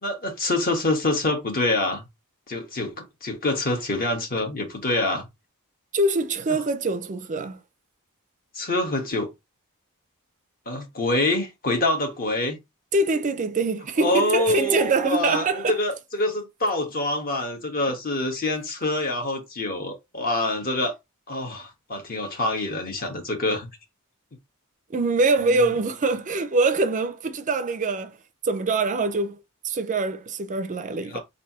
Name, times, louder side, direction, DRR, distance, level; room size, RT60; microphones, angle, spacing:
voice 1, 0.0-2.1 2.5-5.3 8.5-9.3 10.7-12.6 14.0-20.9 21.3-23.7 25.4-25.7 31.0-31.2, left 2 dB, 45° left, 1.3 m, -26 dB
voice 2, 5.9-7.6 12.9-15.8 24.9-28.2 28.4-29.4 29.6-31.2, right 3 dB, 35° right, 0.4 m, -24 dB
3.3 x 2.6 x 4.2 m
head